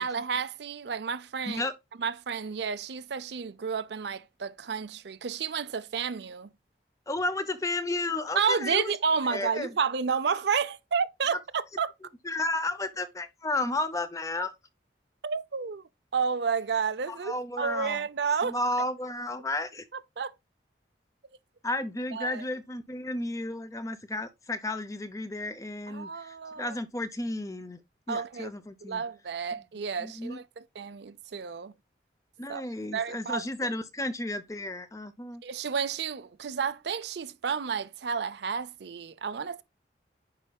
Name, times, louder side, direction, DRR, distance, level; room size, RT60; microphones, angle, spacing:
voice 1, 0.0-1.6 2.0-6.5 8.4-11.9 15.2-15.8 16.1-18.6 20.2-20.3 22.1-22.4 25.9-26.8 28.1-28.5 28.9-31.7 32.5-32.6 32.9-33.4 35.4-39.6, right 6 dB, 65° right, 0.5 m, -31 dB
voice 2, 7.1-8.9 9.3-9.7 12.2-14.5 17.1-18.0 18.4-19.8 21.6-27.8 28.1-29.0 30.0-30.4 32.4-35.4, left 2 dB, 15° left, 0.5 m, -33 dB
9.7 x 4.6 x 2.3 m
head